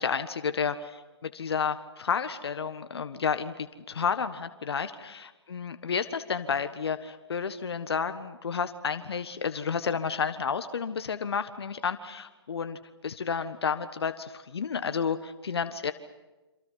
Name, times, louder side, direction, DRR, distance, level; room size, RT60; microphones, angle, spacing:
voice 1, 0.0-15.9, left 6 dB, 65° left, 9 dB, 1.5 m, -31 dB
28.0 x 27.0 x 5.7 m, 1.1 s
figure-of-eight pair, 135°, 14 cm